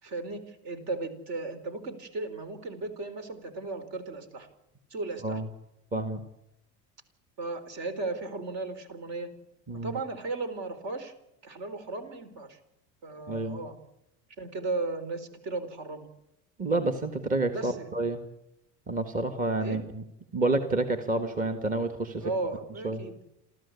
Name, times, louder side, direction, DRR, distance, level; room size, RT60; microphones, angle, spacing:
voice 1, 0.0-4.5 4.9-5.4 7.4-9.3 9.8-11.1 11.4-12.6 13.0-13.8 14.4-16.1 17.5-17.9 19.6-19.8 22.2-23.2, right 3 dB, 55° right, 9 dB, 4.4 m, -35 dB
voice 2, 5.9-6.2 9.7-9.9 13.3-13.6 16.6-18.2 18.9-20.0 20.3-22.3 22.8-23.0, right 2 dB, 25° right, 6 dB, 1.7 m, -29 dB
28.5 x 14.0 x 8.4 m, 0.87 s
cardioid pair, 140°, 33 cm